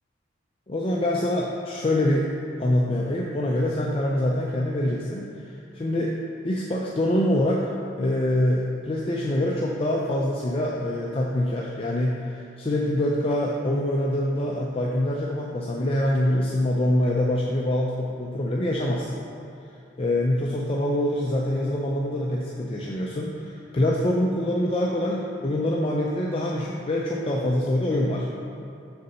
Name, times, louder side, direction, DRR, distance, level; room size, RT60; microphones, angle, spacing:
voice 1, 0.7-2.3 2.6-5.3 5.7-6.2 6.4-7.7 8.0-19.2 20.0-28.3, left 1 dB, 30° left, -3 dB, 0.4 m, -25 dB
6.7 x 4.1 x 5.5 m, 2.7 s
head